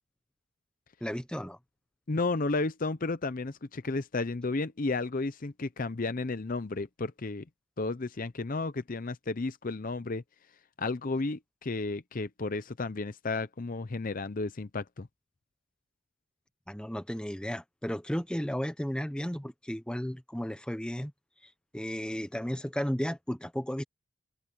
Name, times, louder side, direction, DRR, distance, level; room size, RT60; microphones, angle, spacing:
voice 1, 1.0-1.6 16.7-21.1 21.4-23.8, equal, 5° left, 0.9 m, -34 dB
voice 2, 2.1-7.4 7.8-10.2 10.8-15.1, left 3 dB, 40° left, 0.6 m, -32 dB
open air
head